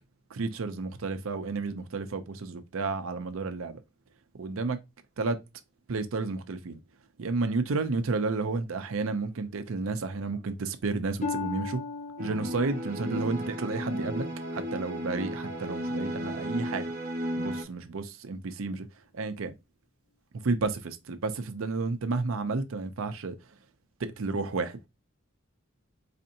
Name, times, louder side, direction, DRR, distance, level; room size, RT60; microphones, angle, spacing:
voice 1, 0.3-3.8 4.3-4.8 5.2-5.4 5.9-6.8 7.2-11.8 12.2-14.3 14.5-16.9 17.4-18.9 19.1-19.5 20.4-23.4 24.0-24.8, right 3 dB, 75° right, 0.6 m, -31 dB
Harp, 11.2-15.0 15.5-15.9 16.5-16.7, left 4 dB, 40° left, 0.7 m, -38 dB
sound 1, 12.2-17.6, equal, 45° right, 0.9 m, -34 dB
4.1 x 2.8 x 2.6 m
head